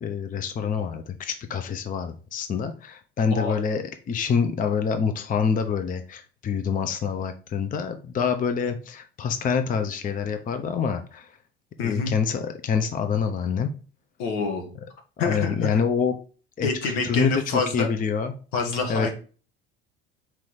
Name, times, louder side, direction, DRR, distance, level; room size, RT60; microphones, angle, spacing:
voice 1, 0.0-11.3 11.8-13.7 15.3-16.1 16.6-16.7 17.0-18.3 18.9-19.1, left 6 dB, 25° left, 8 dB, 0.6 m, -26 dB
voice 2, 11.8-12.1 14.2-14.7 15.2-15.8 16.6-17.9 18.5-19.1, left 4 dB, 70° left, 3 dB, 1.4 m, -27 dB
4.4 x 3.0 x 3.9 m, 0.38 s
hypercardioid pair, 75°, 31 cm